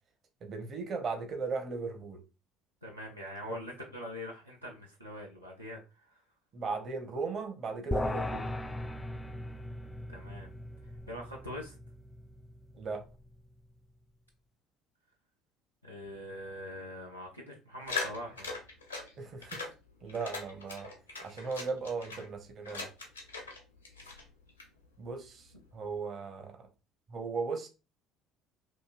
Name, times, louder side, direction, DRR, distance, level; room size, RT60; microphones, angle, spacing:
voice 1, 0.4-2.2 6.5-8.5 12.7-13.0 19.2-19.6 20.0-20.9 21.2-22.9 25.0-25.5 25.7-26.5 27.1-27.7, right 4 dB, 40° right, 0.7 m, -37 dB
voice 2, 2.8-6.2 10.1-10.5 11.1-11.7 15.8-18.6, left 1 dB, 90° right, 0.4 m, -43 dB
sound 1, 7.9-13.4, left 1 dB, 15° left, 0.3 m, -39 dB
sound 2, 17.9-19.1 19.4-19.7 20.1-22.3 22.6-23.6 23.8-24.7, left 4 dB, 85° left, 0.7 m, -40 dB
2.9 x 2.7 x 2.4 m
figure-of-eight pair, 55°, 0 cm